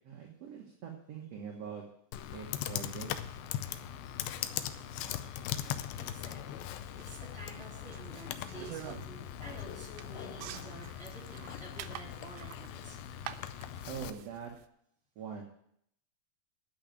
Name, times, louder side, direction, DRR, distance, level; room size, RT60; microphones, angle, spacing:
voice 1, 0.0-1.8 2.3-3.2 13.9-14.5 15.2-15.4, right 7 dB, 60° right, 0 dB, 1.8 m, -43 dB
Computer keyboard, 2.1-14.1, left 11 dB, 80° left, 2.4 m, -40 dB
voice 2, 5.9-6.7 7.0-13.0, right 2 dB, 20° right, -4 dB, 3.8 m, -50 dB
sound 1, 7.0-14.7, right 13 dB, 85° right, 2.5 m, -48 dB
10.5 x 6.4 x 9.0 m, 0.71 s
omnidirectional pair, 4.3 m